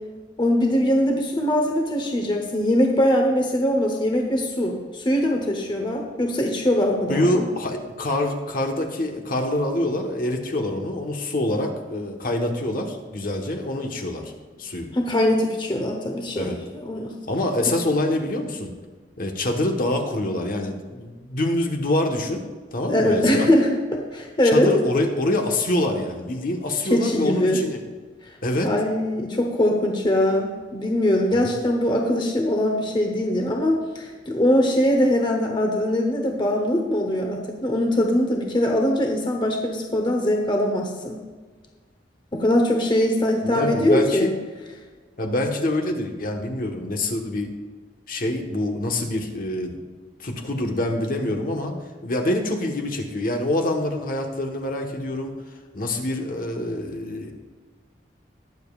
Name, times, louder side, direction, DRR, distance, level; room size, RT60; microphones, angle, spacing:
voice 1, 0.4-7.5 14.9-17.2 22.9-24.7 26.8-27.6 28.6-41.2 42.3-44.3, left 1 dB, 25° left, 2 dB, 1.0 m, -22 dB
voice 2, 7.1-14.3 14.6-14.9 16.4-16.6 17.3-18.7 19.2-22.5 22.7-23.5 24.5-27.8 28.4-28.7 31.3-31.5 43.4-44.3 45.2-47.5 48.1-49.8 50.2-51.7 52.0-55.3 55.7-57.3, left 1 dB, 55° left, 2 dB, 1.2 m, -25 dB
20.5 x 7.2 x 2.4 m, 1.4 s
head